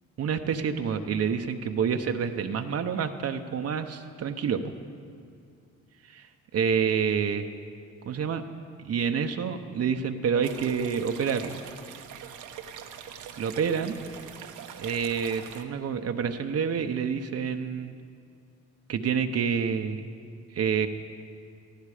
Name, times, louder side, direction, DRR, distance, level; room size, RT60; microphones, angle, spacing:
voice 1, 0.2-4.7 6.0-7.5 8.1-8.4 8.8-11.6 13.4-13.9 14.8-17.9 18.9-20.1 20.5-20.9, right 7 dB, 55° right, 6 dB, 0.9 m, -28 dB
sound 1, 10.4-15.6, right 8 dB, 85° right, 1.1 m, -43 dB
18.0 x 14.5 x 5.0 m, 2.3 s
cardioid pair, 90°, 30 cm